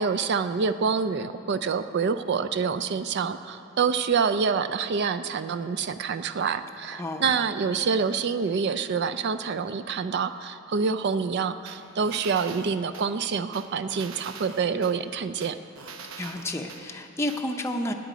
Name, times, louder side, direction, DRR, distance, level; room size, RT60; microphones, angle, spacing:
voice 1, 0.0-15.6, right 5 dB, 55° right, 10 dB, 0.4 m, -27 dB
voice 2, 7.0-7.3 16.2-17.9, left 1 dB, 15° left, 2 dB, 0.6 m, -31 dB
sound 1, 11.7-13.1 13.5-14.9 15.4-16.8 17.3-17.4, right 5 dB, 75° right, 0.8 m, -43 dB
17.0 x 9.2 x 5.1 m, 2.7 s
head